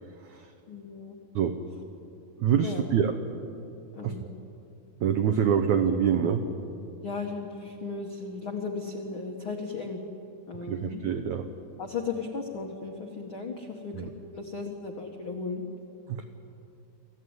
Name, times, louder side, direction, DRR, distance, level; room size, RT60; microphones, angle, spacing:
voice 1, 0.7-1.1 2.6-2.9 3.9-4.3 7.0-10.0 10.5-11.1 11.8-14.1 14.3-15.6, left 4 dB, 85° left, 2 dB, 1.1 m, -36 dB
voice 2, 2.4-3.1 4.0-4.3 5.0-6.4 10.7-11.5 13.9-14.1 16.1-16.2, right 8 dB, 90° right, 7 dB, 1.6 m, -25 dB
24.5 x 15.0 x 9.6 m, 2.8 s
omnidirectional pair, 4.7 m